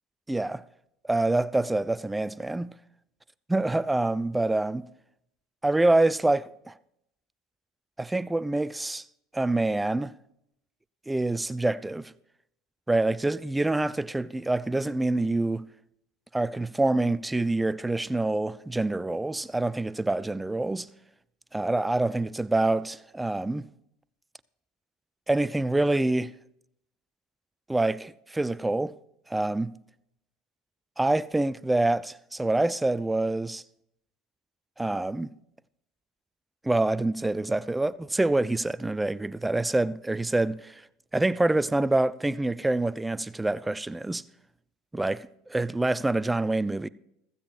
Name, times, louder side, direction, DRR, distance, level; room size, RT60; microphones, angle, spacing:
voice 1, 0.3-0.6 1.1-2.7 3.5-4.9 5.6-6.8 8.0-9.0 9.3-10.1 11.1-12.1 12.9-15.6 16.3-20.9 21.5-23.7 25.3-26.3 27.7-29.0 29.3-29.7 31.0-33.6 34.8-35.3 36.6-40.9 41.1-44.2 44.9-46.9, right 2 dB, 10° right, 0.4 m, -26 dB
15.5 x 15.0 x 2.5 m
hypercardioid pair, 75°, 0 cm